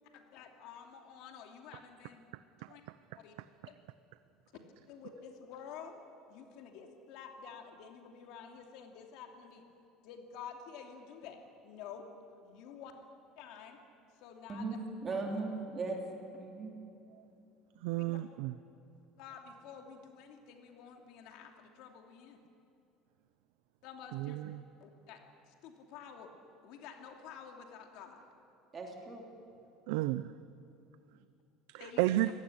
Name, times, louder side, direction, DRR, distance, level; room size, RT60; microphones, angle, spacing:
voice 1, 0.1-2.2 2.7-2.8 3.1-3.3 3.6-3.8 4.5-6.0 6.3-9.6 10.0-12.1 12.4-12.9 13.4-13.8 14.2-14.7 15.1-15.2 18.1-18.2 19.2-22.4 23.8-24.4 24.8-26.3 26.6-28.3 31.8-32.0, left 7 dB, 55° left, 4 dB, 2.7 m, -50 dB
voice 2, 15.0-16.0 16.3-16.7 28.7-29.2, right 3 dB, 20° right, 1 dB, 2.9 m, -37 dB
voice 3, 17.8-18.5 24.1-24.6 29.9-30.3 31.7-32.3, right 16 dB, 75° right, 13 dB, 0.6 m, -32 dB
25.0 x 18.5 x 9.9 m, 2.7 s
cardioid pair, 175°, 0 cm